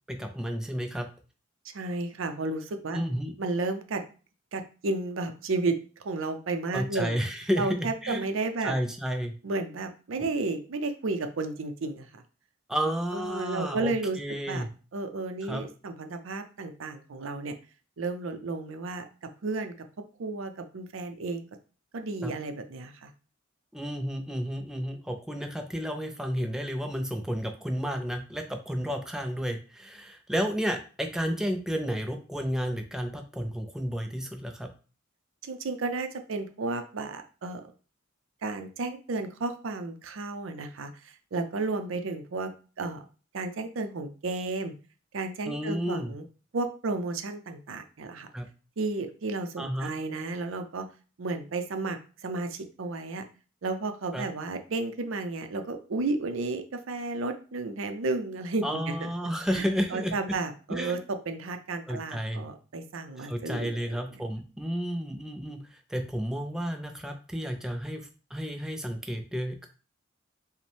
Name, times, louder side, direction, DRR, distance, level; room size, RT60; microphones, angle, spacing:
voice 1, 0.1-1.1 2.9-3.3 6.7-8.3 8.6-9.4 10.2-10.3 12.7-14.7 15.4-15.6 22.2-22.3 23.7-34.7 45.5-46.1 48.3-48.5 49.6-49.9 54.1-54.3 58.6-60.2 60.7-61.0 61.9-62.5 63.2-69.7, equal, 5° right, 4 dB, 0.4 m, -32 dB
voice 2, 1.7-3.0 3.4-4.0 4.5-5.8 6.0-7.2 7.6-8.7 9.4-12.2 12.9-14.2 14.5-14.6 14.9-17.5 18.0-19.0 19.4-19.7 20.2-21.4 21.9-23.1 35.4-37.7 38.4-42.5 42.8-43.0 43.3-44.7 45.1-46.2 46.5-48.3 48.8-50.9 51.2-53.2 53.6-59.1 59.9-64.0, right 3 dB, 70° right, 7 dB, 0.5 m, -32 dB
5.1 x 2.1 x 3.3 m, 0.36 s
head